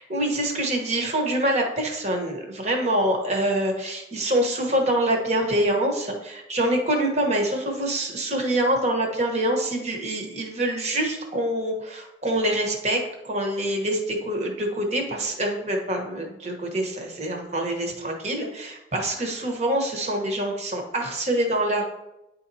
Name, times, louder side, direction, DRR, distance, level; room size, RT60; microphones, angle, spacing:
voice 1, 0.0-21.9, right 1 dB, 40° right, 2 dB, 1.1 m, -25 dB
9.5 x 4.1 x 2.7 m, 0.94 s
head